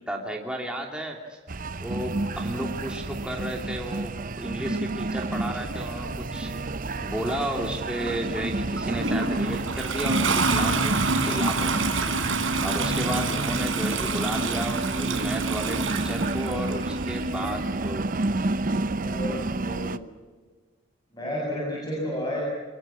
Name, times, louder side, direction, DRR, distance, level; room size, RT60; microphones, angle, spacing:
voice 1, 0.1-1.4 1.8-6.5 7.0-11.8 12.6-18.0, right 1 dB, 5° right, 0 dB, 2.8 m, -33 dB
sound 1, 1.5-20.0, right 2 dB, 45° right, 0.8 m, -30 dB
sound 2, 1.9-16.7, right 1 dB, 60° right, 3.2 m, -46 dB
Toilet flush, 8.8-17.2 18.2-18.3, right 3 dB, 75° right, 3.9 m, -27 dB
voice 2, 19.0-20.0 21.1-22.4, left 1 dB, 20° left, -4 dB, 7.4 m, -31 dB
25.0 x 22.5 x 7.4 m, 1.4 s
head